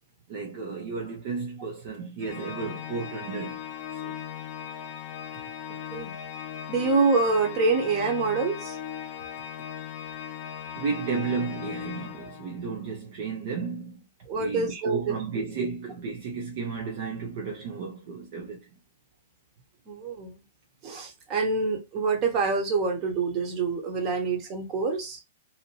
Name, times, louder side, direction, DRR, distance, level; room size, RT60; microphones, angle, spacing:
voice 1, 0.3-3.6 4.0-4.2 10.8-14.0 14.4-18.7, right 5 dB, 50° right, 0.7 m, -33 dB
Organ, 2.2-12.8, left 9 dB, 40° left, 0.4 m, -38 dB
voice 2, 6.7-8.8 14.3-15.4 19.9-20.4 20.8-25.2, right 4 dB, 35° right, 1.2 m, -26 dB
2.8 x 2.5 x 3.0 m
hypercardioid pair, 115°, 0 cm